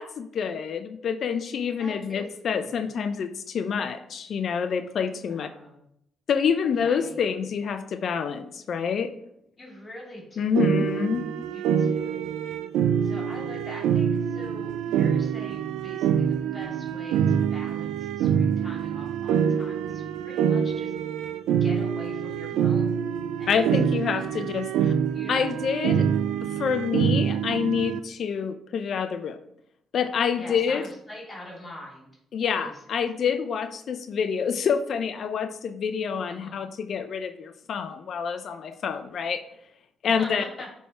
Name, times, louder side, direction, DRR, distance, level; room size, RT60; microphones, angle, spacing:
voice 1, 0.0-5.5 6.3-9.1 10.4-11.3 23.5-24.9 25.3-26.1 26.6-29.4 29.9-30.9 32.3-39.4 40.0-40.4, left 6 dB, 60° left, 9 dB, 0.5 m, -27 dB
voice 2, 1.8-2.8 5.3-5.9 6.8-7.3 9.6-10.9 11.4-12.3 13.0-20.9 21.6-23.0 23.4-24.8 25.1-26.0 30.3-32.1 32.6-32.8 33.1-33.2 36.3-36.8 40.0-40.7, left 1 dB, 30° left, -2 dB, 2.4 m, -44 dB
sound 1, 10.6-28.0, right 8 dB, 90° right, 0.3 m, -25 dB
8.5 x 3.6 x 4.2 m, 0.74 s
cardioid pair, 90°, 0 cm